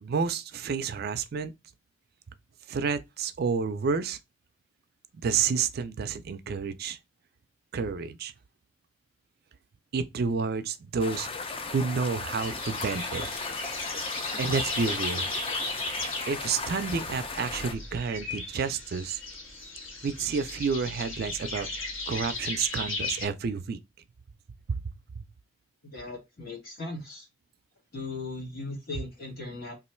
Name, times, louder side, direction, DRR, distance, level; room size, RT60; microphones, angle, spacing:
voice 1, 0.0-1.5 2.7-4.2 5.1-7.0 7.7-8.3 9.9-11.3 11.6-13.3 14.4-15.3 16.3-19.2 20.0-23.8 24.7-24.8 25.2-25.3, right 5 dB, 50° right, 0.4 m, -30 dB
sound 1, 11.0-17.7, left 3 dB, 30° left, 0.5 m, -36 dB
sound 2, 12.4-23.3, left 2 dB, 80° left, 1.2 m, -36 dB
voice 2, 25.8-27.3 27.9-29.7, left 3 dB, 50° left, 1.7 m, -38 dB
3.0 x 2.5 x 4.2 m
head